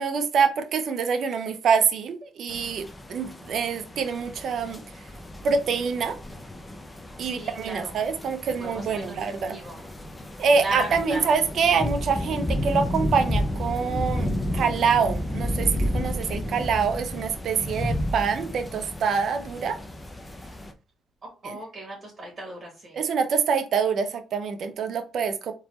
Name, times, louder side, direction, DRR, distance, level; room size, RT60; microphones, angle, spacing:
voice 1, 0.0-4.8 5.4-6.2 7.2-9.6 10.4-15.7 15.9-19.8 21.4-21.6 22.9-25.5, right 6 dB, 65° right, 8 dB, 0.7 m, -25 dB
sound 1, 2.5-20.7, left 1 dB, 15° left, 0.8 m, -32 dB
voice 2, 7.2-8.0 8.4-9.2 9.5-9.9 10.5-11.3 21.2-23.0, right 1 dB, 35° right, -1 dB, 2.4 m, -36 dB
4.1 x 3.8 x 3.0 m, 0.34 s
cardioid pair, 90°, 0 cm